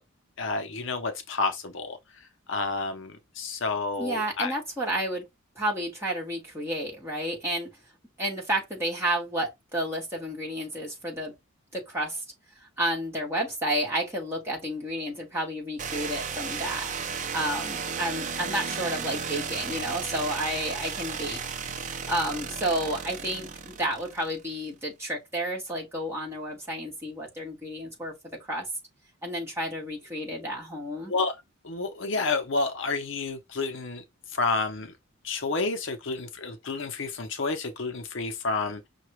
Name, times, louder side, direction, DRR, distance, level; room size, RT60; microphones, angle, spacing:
voice 1, 0.4-2.0 2.5-4.5 31.1-31.3 31.6-34.0 34.3-34.9 35.2-38.9, left 3 dB, 60° left, 0.6 m, -30 dB
voice 2, 4.0-5.2 5.5-7.7 8.2-11.3 11.7-12.2 12.8-16.9 17.3-21.4 22.1-28.1 28.5-28.6 29.2-31.1, right 1 dB, 10° right, 1.6 m, -31 dB
sound 1, 15.8-24.5, right 6 dB, 35° right, 0.5 m, -34 dB
5.6 x 2.3 x 3.1 m
head